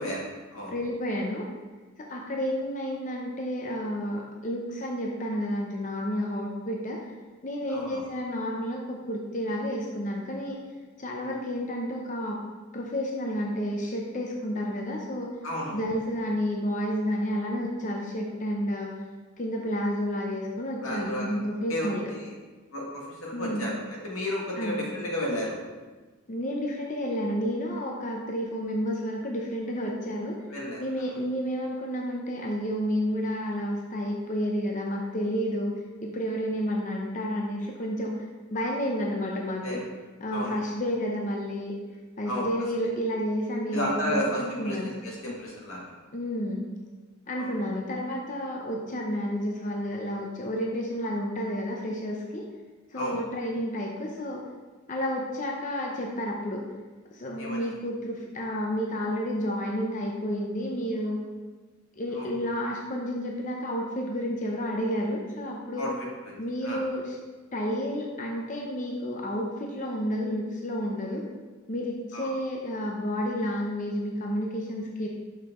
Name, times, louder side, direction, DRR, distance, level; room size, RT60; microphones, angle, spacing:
voice 1, 0.0-0.7 7.7-8.0 15.4-15.8 20.8-21.4 21.7-22.3 22.7-25.6 30.5-30.8 39.6-39.9 40.3-40.6 42.3-42.5 43.7-45.9 47.4-47.5 52.9-53.2 57.4-57.7 62.1-62.3 65.8-66.1 66.6-66.8 72.1-72.3, equal, 85° left, -3 dB, 1.8 m, -32 dB
voice 2, 0.7-1.5 2.0-7.1 7.4-10.6 11.0-12.4 12.7-15.3 15.7-19.0 19.4-22.1 23.3-23.7 24.6-24.8 26.3-30.4 30.8-39.8 40.2-41.7 42.2-44.9 46.1-46.8 47.3-52.4 52.9-54.4 54.9-56.6 57.1-61.2 62.0-65.9 66.4-67.2 67.5-71.2 71.7-75.1, equal, 40° left, -1 dB, 0.7 m, -31 dB
6.7 x 5.6 x 3.7 m, 1.3 s
head